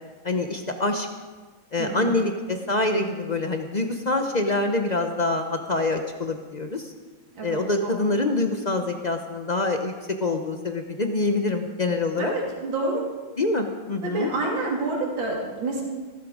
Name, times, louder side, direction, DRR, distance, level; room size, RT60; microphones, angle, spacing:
voice 1, 0.2-1.1 1.7-6.9 7.4-9.9 10.2-12.3 13.4-14.3, left 2 dB, 75° left, 5 dB, 0.4 m, -25 dB
voice 2, 1.8-2.2 7.4-8.1 12.2-13.0 14.0-15.8, right 2 dB, 75° right, -2 dB, 3.5 m, -28 dB
16.0 x 14.0 x 4.9 m, 1.4 s
omnidirectional pair, 2.2 m